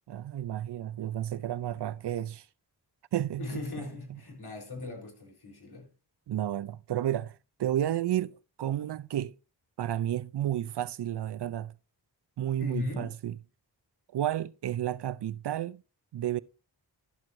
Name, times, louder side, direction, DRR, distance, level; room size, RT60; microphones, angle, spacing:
voice 1, 0.1-2.5 3.1-3.6 4.1-4.2 6.3-9.3 9.8-11.7 12.4-13.3 14.1-15.8 16.1-16.4, right 12 dB, 65° right, 0.6 m, -32 dB
voice 2, 3.4-5.9 12.6-13.1, left 3 dB, 65° left, 4.0 m, -38 dB
12.0 x 7.5 x 2.6 m
cardioid pair, 65°, 43 cm